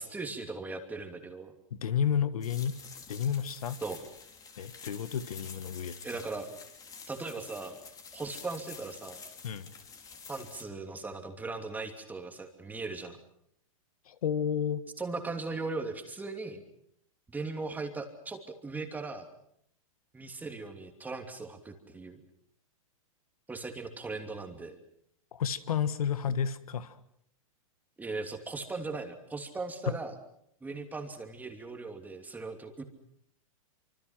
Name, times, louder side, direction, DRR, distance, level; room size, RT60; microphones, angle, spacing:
voice 1, 0.0-1.5 3.8-4.0 6.0-6.5 7.1-7.8 8.1-9.2 10.3-13.2 15.0-16.6 17.3-19.3 20.1-22.2 23.5-24.8 28.0-30.1 30.6-32.8, right 3 dB, 10° right, 5 dB, 2.9 m, -38 dB
voice 2, 1.7-2.8 3.1-3.8 4.6-5.9 9.4-9.7 14.1-14.8 25.3-27.0 29.9-30.0, left 8 dB, 85° left, 13 dB, 1.5 m, -31 dB
sound 1, 2.4-10.6, left 5 dB, 20° left, 3.3 m, -48 dB
26.0 x 25.0 x 6.0 m, 0.72 s
hypercardioid pair, 135°, 18 cm